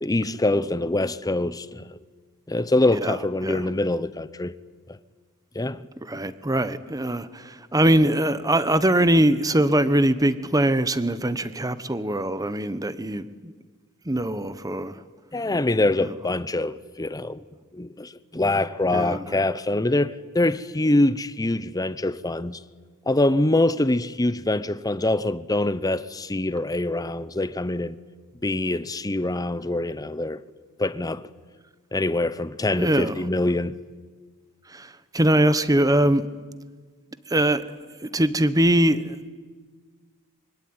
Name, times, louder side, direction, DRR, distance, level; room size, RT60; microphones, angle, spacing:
voice 1, 0.0-2.0 2.5-4.5 4.9-5.0 5.5-5.9 15.3-17.4 17.7-22.6 23.1-28.0 28.4-30.4 30.8-31.3 31.9-33.8, left 2 dB, 15° left, 0.8 m, -24 dB
voice 2, 6.1-13.5 14.1-15.0 16.0-16.1 18.9-19.2 32.8-33.1 34.7-36.2 37.3-37.6 38.0-39.3, right 1 dB, 15° right, 1.0 m, -22 dB
25.0 x 23.5 x 9.7 m
head